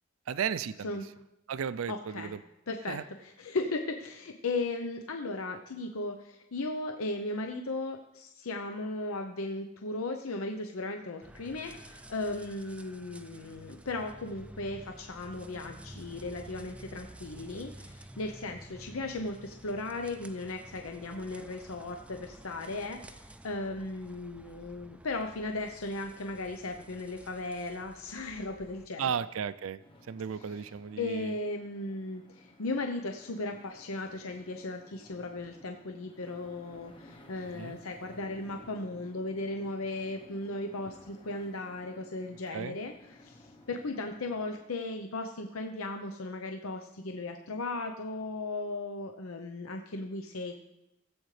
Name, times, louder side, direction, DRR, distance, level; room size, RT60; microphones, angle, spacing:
voice 1, 0.3-0.9 1.5-2.4 2.9-3.0 29.0-29.8 30.1-31.4 37.5-37.8 42.5-42.8, right 7 dB, 75° right, 15 dB, 0.4 m, -34 dB
voice 2, 1.9-2.3 2.7-29.2 31.0-43.4 43.7-50.5, left 2 dB, 85° left, 4 dB, 0.8 m, -36 dB
sound 1, 11.2-28.9, right 1 dB, 5° right, 0.3 m, -51 dB
sound 2, 29.8-44.6, left 1 dB, 25° left, 1.0 m, -56 dB
17.5 x 7.9 x 3.3 m, 0.88 s
head